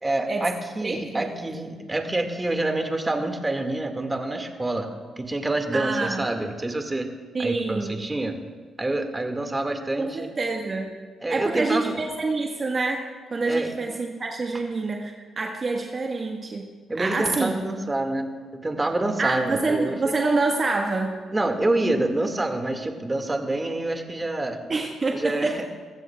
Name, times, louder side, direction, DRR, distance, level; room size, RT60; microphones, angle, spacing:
voice 1, 0.0-4.9 5.2-7.1 7.4-8.4 8.8-10.3 11.2-12.1 13.5-13.7 16.9-18.3 18.6-20.0 21.3-24.6 25.1-25.6, right 2 dB, 20° right, 4 dB, 2.0 m, -27 dB
voice 2, 0.8-1.3 5.7-6.3 7.3-8.0 10.0-10.9 11.3-16.7 16.9-17.5 19.2-21.2 24.7-25.6, right 3 dB, 45° right, 1 dB, 1.5 m, -27 dB
23.0 x 15.0 x 2.4 m, 1.5 s
supercardioid pair, 50°, 0 cm